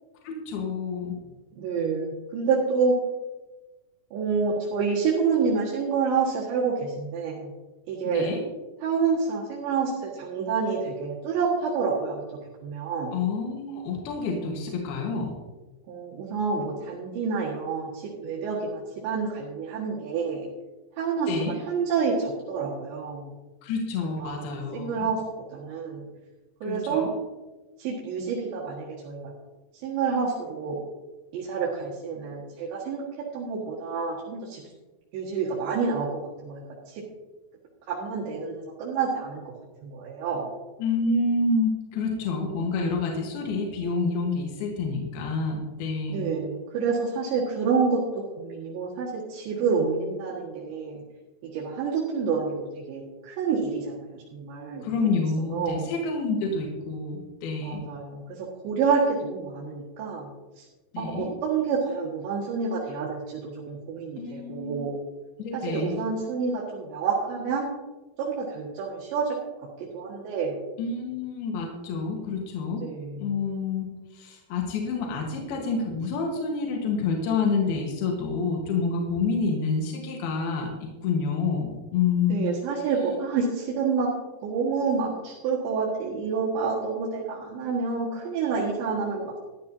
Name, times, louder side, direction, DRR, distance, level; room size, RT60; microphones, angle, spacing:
voice 1, 0.2-1.2 8.1-8.4 13.1-15.3 21.3-21.5 23.6-25.1 26.6-27.1 40.8-46.2 54.8-57.8 60.9-61.3 64.2-64.8 65.4-66.0 70.8-72.9 73.2-80.7 81.0-82.5, left 4 dB, 70° left, 0 dB, 3.2 m, -28 dB
voice 2, 1.6-3.0 4.1-7.5 7.9-8.3 8.8-12.2 12.6-13.2 15.9-20.5 21.0-23.3 24.0-25.2 25.5-26.0 26.6-27.1 27.8-29.3 29.8-30.8 31.3-33.0 33.3-34.6 35.1-36.1 36.4-37.0 37.9-39.4 39.8-40.5 46.1-51.0 51.5-55.2 55.5-55.9 57.6-60.3 60.6-60.7 61.0-65.0 65.5-67.7 68.2-69.4 69.9-70.6 72.7-73.3 82.3-84.1 84.4-89.4, right 5 dB, 90° right, -7 dB, 4.2 m, -28 dB
14.0 x 12.5 x 2.8 m, 1.2 s
omnidirectional pair, 4.9 m